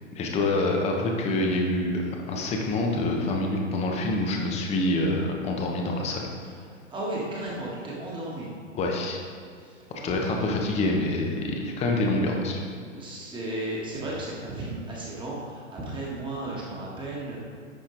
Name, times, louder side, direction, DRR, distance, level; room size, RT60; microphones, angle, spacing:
voice 1, 0.1-6.3 8.8-9.2 9.9-12.6, left 2 dB, 15° left, 1 dB, 0.8 m, -26 dB
voice 2, 6.9-8.5 9.6-10.6 12.9-17.4, right 1 dB, 10° right, -4 dB, 1.5 m, -34 dB
10.0 x 4.4 x 3.8 m, 2.1 s
hypercardioid pair, 130°, 39 cm